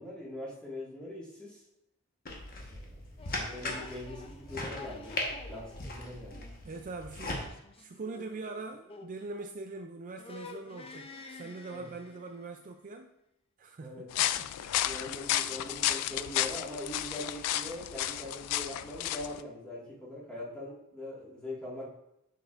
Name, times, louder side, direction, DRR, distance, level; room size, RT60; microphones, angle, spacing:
voice 1, 0.0-1.6 2.5-6.5 11.7-11.9 13.8-14.1 14.8-21.9, left 1 dB, 5° left, -7 dB, 1.9 m, -42 dB
sound 1, 2.3-7.5, left 2 dB, 45° left, 1.2 m, -39 dB
sound 2, 3.2-9.9 10.1-12.6, left 3 dB, 25° left, 0.5 m, -49 dB
voice 2, 6.6-7.4 7.8-13.1 13.6-14.9, right 3 dB, 35° right, 4 dB, 0.4 m, -43 dB
sound 3, 14.1-19.4, left 13 dB, 85° left, 0.3 m, -32 dB
7.0 x 6.2 x 2.5 m, 0.83 s
head